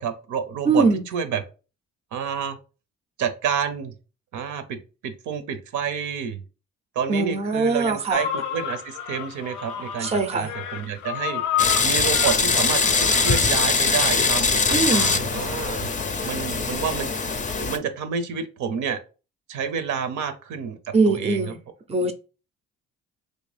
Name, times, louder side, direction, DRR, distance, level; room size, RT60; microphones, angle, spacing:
voice 1, 0.0-0.8 1.1-1.4 2.1-2.6 3.2-3.9 4.3-4.8 5.0-6.4 7.0-15.9 16.2-17.1 17.6-19.0 19.5-21.5, right 7 dB, 75° right, 0.6 m, -29 dB
voice 2, 0.7-1.0 7.1-8.2 10.0-10.5 14.7-15.2 20.9-21.6 21.9-22.1, right 3 dB, 20° right, 0.5 m, -22 dB
sound 1, 8.1-15.2, left 10 dB, 90° left, 0.5 m, -32 dB
sound 2, 11.6-17.8, left 4 dB, 25° left, 0.5 m, -22 dB
3.3 x 2.6 x 3.3 m
cardioid pair, 90°, 30 cm